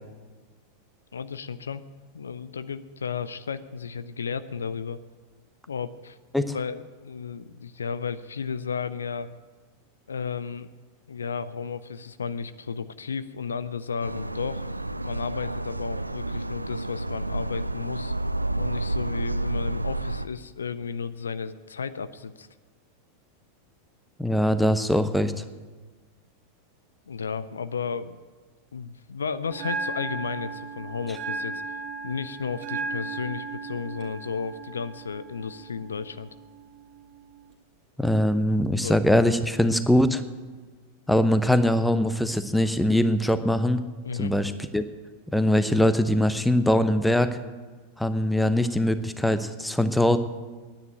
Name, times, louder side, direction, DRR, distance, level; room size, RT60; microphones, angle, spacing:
voice 1, 1.1-1.8 2.1-5.0 5.7-6.2 6.5-9.3 10.1-10.7 11.1-14.6 15.0-18.1 18.6-22.5 27.1-28.2 28.7-31.6 32.0-36.3 38.8-39.0 44.0-44.3, left 6 dB, 70° left, 14 dB, 0.5 m, -33 dB
sound 1, 14.0-20.3, right 2 dB, 85° right, 0.4 m, -30 dB
voice 2, 24.2-25.4 38.0-40.2 41.1-43.8 44.1-44.8 45.3-47.4 48.0-50.2, left 1 dB, ahead, 11 dB, 0.7 m, -22 dB
Bell, 29.5-37.5, right 4 dB, 40° right, 2.1 m, -36 dB
10.5 x 9.6 x 9.0 m, 1.4 s
figure-of-eight pair, 90°, 0 cm